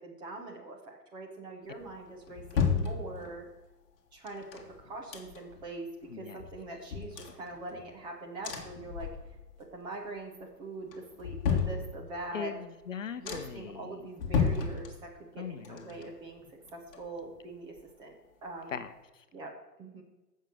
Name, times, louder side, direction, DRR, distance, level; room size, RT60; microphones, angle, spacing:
voice 1, 0.0-3.5 4.1-9.1 9.6-12.5 13.2-16.4 16.7-18.8 19.3-20.0, right 2 dB, 10° right, 0 dB, 1.0 m, -43 dB
sound 1, 1.8-3.6 4.3-5.7 6.0-6.1 6.4-8.0 8.4-9.6 9.9-10.4 10.9-12.4 12.8-12.9 13.2-13.7 14.1-15.4 15.6-17.5 17.8-17.9, left 6 dB, 35° left, 2.0 m, -34 dB
voice 2, 6.1-6.4 12.3-14.0 15.4-16.1 18.7-19.2, left 7 dB, 50° left, 11 dB, 1.0 m, -40 dB
16.0 x 6.6 x 6.3 m, 1.1 s
figure-of-eight pair, 135°, 48 cm